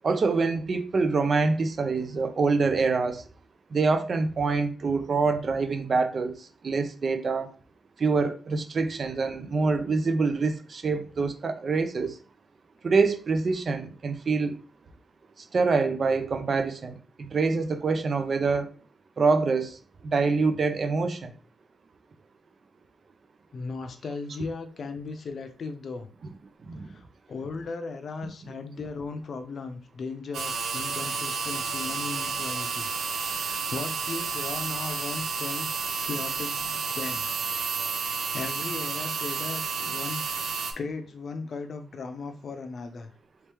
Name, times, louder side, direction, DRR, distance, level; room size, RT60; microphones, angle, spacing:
voice 1, 0.0-3.2 3.7-6.4 6.6-7.5 8.0-12.2 12.8-14.6 15.5-18.7 19.2-19.8 20.0-21.3 26.7-26.9, right 4 dB, 45° right, 0.5 m, -25 dB
voice 2, 23.5-26.1 26.7-32.9 33.2-35.7 36.0-37.3 37.9-40.2 40.8-43.1, left 4 dB, 55° left, 0.6 m, -37 dB
sound 1, 30.3-40.7, right 5 dB, 85° right, 0.6 m, -31 dB
3.1 x 3.0 x 3.4 m
cardioid pair, 110°, 0 cm